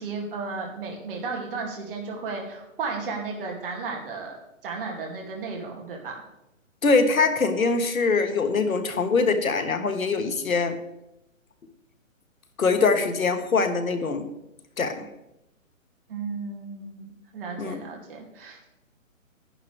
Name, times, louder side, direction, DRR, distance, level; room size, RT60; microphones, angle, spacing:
voice 1, 0.0-4.4 4.6-6.1 16.1-18.6, right 4 dB, 40° right, 0 dB, 2.3 m, -34 dB
voice 2, 6.8-10.8 12.6-14.3 14.8-15.1 17.6-17.8, left 4 dB, 85° left, 8 dB, 1.5 m, -23 dB
11.0 x 10.0 x 3.3 m, 0.88 s
hypercardioid pair, 155°, 40 cm